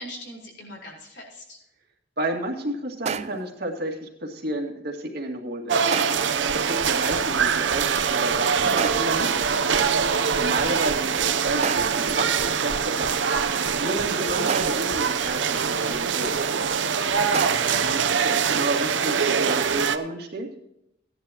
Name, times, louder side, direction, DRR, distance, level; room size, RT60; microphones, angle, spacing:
voice 1, 0.0-1.6 10.2-10.8 17.3-17.9, left 1 dB, 65° left, -2 dB, 4.4 m, -42 dB
voice 2, 2.2-5.8 6.3-9.5 10.3-13.2 13.8-16.6 17.8-20.5, right 1 dB, 55° right, 0 dB, 2.1 m, -31 dB
sound 1, 3.1-3.6 5.9-6.4 8.8-9.3 11.6-12.1 14.5-15.0 17.3-17.9, right 6 dB, 35° right, 0.4 m, -31 dB
sound 2, 5.7-20.0, right 6 dB, 70° right, 0.7 m, -23 dB
Run, 6.0-18.2, right 1 dB, 85° right, 2.7 m, -42 dB
15.5 x 10.5 x 2.9 m, 0.81 s
head